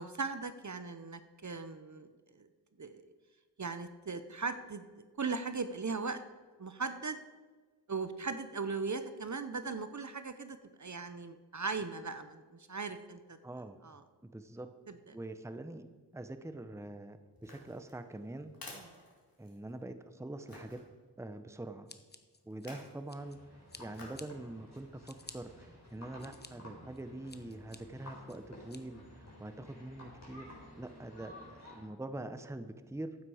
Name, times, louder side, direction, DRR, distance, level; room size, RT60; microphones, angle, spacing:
voice 1, 0.0-2.1 2.4-2.5 2.8-3.0 3.6-4.8 5.2-6.2 6.6-7.2 7.9-13.4 13.8-14.0 14.9-15.0 18.7-18.9, right 4 dB, 45° right, 10 dB, 0.8 m, -38 dB
voice 2, 13.4-13.8 14.2-14.7 15.1-15.8 16.1-18.5 19.4-20.8 21.2-21.9 22.4-23.4 23.8-30.5 30.8-33.2, right 2 dB, 5° right, 9 dB, 0.7 m, -44 dB
sound 1, 17.4-19.8 20.5-20.8 22.5-23.0 23.9-24.3 24.8-24.9, left 2 dB, 60° left, 3.0 m, -52 dB
Scissors, 21.9-23.4 23.7-24.3 24.7-25.4 25.9-26.5 26.9-27.8 28.3-28.8, left 3 dB, 25° left, 0.9 m, -52 dB
sound 2, 23.2-31.8, left 1 dB, 40° left, 4.4 m, -53 dB
12.5 x 8.9 x 4.9 m, 1.4 s
wide cardioid pair, 50°, 40 cm